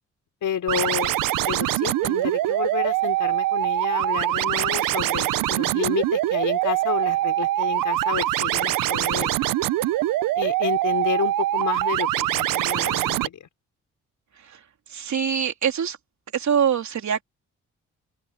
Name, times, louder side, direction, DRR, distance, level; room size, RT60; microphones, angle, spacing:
voice 1, 0.4-1.2 1.5-9.3 10.4-13.5, left 9 dB, 70° left, 5.6 m, -30 dB
sound 1, 0.7-13.3, right 15 dB, 85° right, 1.0 m, -23 dB
voice 2, 14.9-16.0 16.3-17.2, right 8 dB, 60° right, 3.4 m, -23 dB
open air
supercardioid pair, 65°, 32 cm